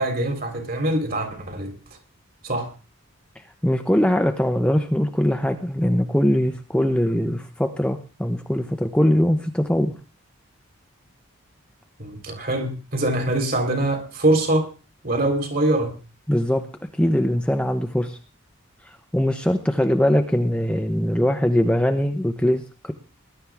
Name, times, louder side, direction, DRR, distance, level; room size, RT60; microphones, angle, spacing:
voice 1, 0.0-1.7 2.4-2.7 12.0-14.7 15.0-16.0, right 1 dB, 45° right, 5 dB, 3.5 m, -23 dB
voice 2, 3.6-9.9 16.3-16.6 17.0-18.2 18.9-22.9, equal, 5° left, 5 dB, 0.9 m, -21 dB
20.0 x 11.5 x 3.5 m, 0.34 s
head